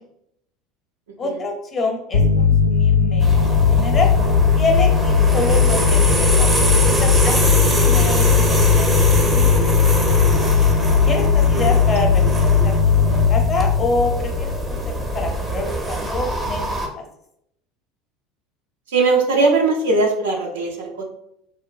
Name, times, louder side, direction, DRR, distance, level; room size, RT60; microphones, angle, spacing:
voice 1, 1.2-4.1 4.5-9.9 11.0-12.8 13.1-14.8 15.1-17.0, left 3 dB, 35° left, 2 dB, 0.6 m, -27 dB
sound 1, 2.1-15.3, left 6 dB, 85° left, 0.3 m, -17 dB
sound 2, 3.2-16.9, right 1 dB, 15° right, 0.5 m, -23 dB
voice 2, 18.9-21.0, right 3 dB, 80° right, 1 dB, 0.4 m, -19 dB
2.6 x 2.1 x 2.3 m, 0.78 s
hypercardioid pair, 75°, 0 cm